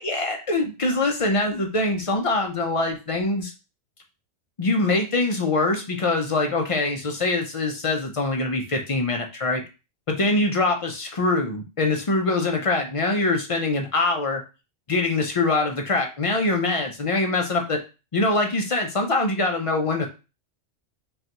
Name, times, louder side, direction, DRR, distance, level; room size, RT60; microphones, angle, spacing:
voice 1, 0.0-3.5 4.6-9.6 10.1-14.4 14.9-17.8 18.1-20.1, left 2 dB, 60° left, 2 dB, 0.3 m, -23 dB
5.3 x 2.3 x 2.9 m, 0.30 s
omnidirectional pair, 1.4 m